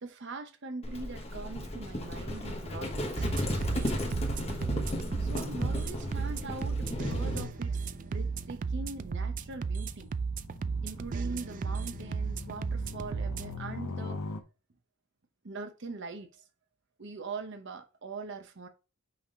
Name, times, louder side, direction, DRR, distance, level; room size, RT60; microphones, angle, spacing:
voice 1, 0.0-3.1 4.6-4.9 5.2-10.1 10.8-14.2 15.4-16.4 17.0-18.7, right 3 dB, 55° right, 0.8 m, -42 dB
Livestock farm animals working animals, 0.8-7.5, left 1 dB, 30° left, 1.1 m, -34 dB
sound 1, 3.2-14.4, left 3 dB, 80° left, 0.8 m, -45 dB
sound 2, 3.2-13.6, right 5 dB, 35° right, 0.3 m, -35 dB
5.7 x 3.5 x 5.4 m
head